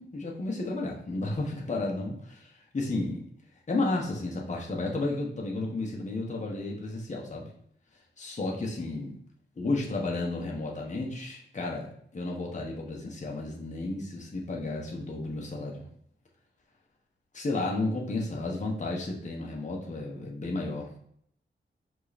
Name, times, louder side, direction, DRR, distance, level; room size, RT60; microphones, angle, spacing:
voice 1, 0.0-3.2 3.7-7.5 8.2-9.1 9.6-15.9 17.3-20.9, left 2 dB, 40° left, -2 dB, 1.3 m, -32 dB
5.6 x 3.9 x 4.3 m, 0.65 s
wide cardioid pair, 135°, 20 cm